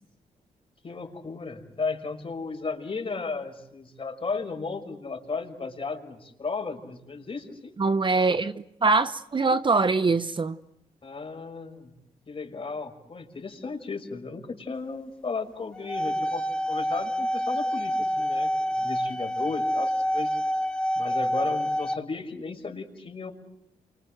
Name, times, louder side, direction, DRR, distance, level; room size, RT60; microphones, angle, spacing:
voice 1, 0.8-7.7 11.0-11.9 12.3-20.3 21.0-23.3, left 4 dB, 40° left, 5.8 m, -35 dB
voice 2, 7.8-10.6, right 3 dB, 35° right, 1.0 m, -23 dB
sound 1, 15.7-21.9, equal, 5° left, 2.2 m, -27 dB
28.5 x 24.5 x 7.9 m
cardioid pair, 65°, 14 cm